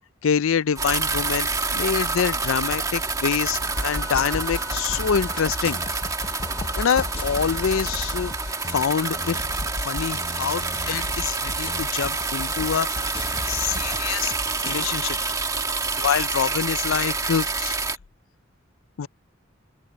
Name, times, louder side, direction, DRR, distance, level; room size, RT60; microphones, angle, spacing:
voice 1, 0.2-5.8 6.8-8.4 8.7-9.4 9.8-12.9 13.5-14.3 14.6-15.2 16.0-17.8 19.0-19.1, left 7 dB, 80° left, 0.5 m, -25 dB
sound 1, 0.8-18.0, right 4 dB, 15° right, 1.5 m, -28 dB
sound 2, 3.6-14.9, left 1 dB, 30° left, 0.8 m, -34 dB
Wind instrument woodwind instrument, 3.7-9.4, left 2 dB, 15° left, 1.7 m, -43 dB
open air
head